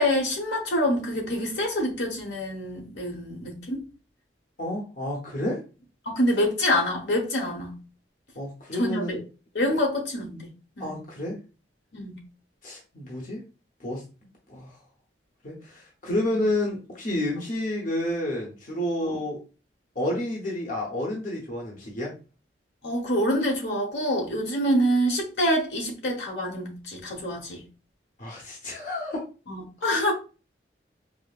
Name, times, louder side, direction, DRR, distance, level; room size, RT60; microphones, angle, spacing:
voice 1, 0.0-3.8 6.1-7.7 8.8-9.2 9.5-10.5 10.8-10.9 11.9-12.2 19.0-19.2 22.8-27.6 29.5-30.1, equal, 70° left, 1.1 m, -26 dB
voice 2, 4.6-5.6 8.3-9.2 10.8-11.4 12.6-13.4 13.8-14.0 14.5-14.8 15.4-19.4 19.9-22.1 28.2-29.2 29.9-30.1, left 1 dB, 50° left, 0.9 m, -30 dB
5.0 x 2.0 x 2.4 m
head